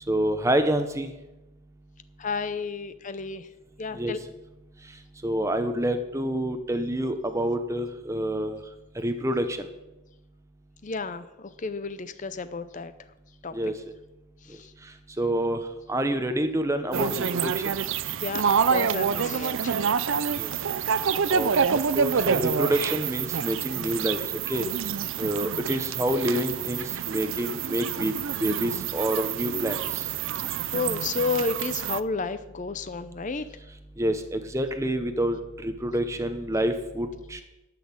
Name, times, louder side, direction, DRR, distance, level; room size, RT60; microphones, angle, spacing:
voice 1, 0.1-1.1 3.9-4.1 5.2-8.6 9.0-9.7 13.5-13.7 15.2-15.6 15.9-17.5 20.4-20.5 21.3-21.5 21.9-24.2 24.5-24.7 25.2-28.1 28.4-30.1 34.0-37.4, right 1 dB, 15° right, 7 dB, 0.8 m, -27 dB
voice 2, 2.2-3.5 3.8-4.2 10.8-12.9 13.4-13.5 14.4-14.7 18.2-20.0 30.5-33.4, left 4 dB, 35° left, 12 dB, 0.5 m, -32 dB
sound 1, 16.9-32.0, right 7 dB, 60° right, 0.5 m, -27 dB
11.5 x 6.4 x 8.8 m, 0.99 s
head